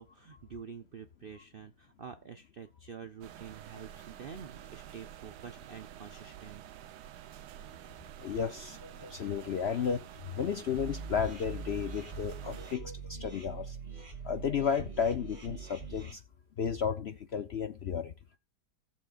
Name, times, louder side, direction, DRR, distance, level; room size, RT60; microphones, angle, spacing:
voice 1, 0.0-6.6, right 6 dB, 60° right, 0.5 m, -47 dB
sound 1, 3.2-12.8, right 11 dB, 75° right, 1.3 m, -49 dB
voice 2, 8.2-10.0 10.3-13.8 14.2-16.2 16.6-18.1, left 7 dB, 60° left, 0.7 m, -33 dB
sound 2, 10.8-16.1, right 5 dB, 30° right, 2.7 m, -43 dB
17.5 x 7.1 x 2.4 m
omnidirectional pair, 1.8 m